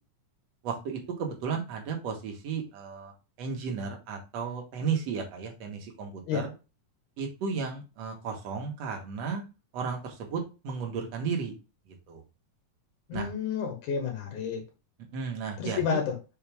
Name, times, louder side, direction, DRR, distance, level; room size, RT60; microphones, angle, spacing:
voice 1, 0.6-3.1 3.4-6.5 7.2-9.4 9.7-11.5 12.1-12.2 13.1-13.3 15.1-16.0, right 5 dB, 60° right, 2 dB, 2.5 m, -34 dB
voice 2, 13.1-14.6 15.6-16.2, left 6 dB, 80° left, 2 dB, 2.8 m, -30 dB
6.0 x 5.0 x 3.4 m, 0.29 s
omnidirectional pair, 3.5 m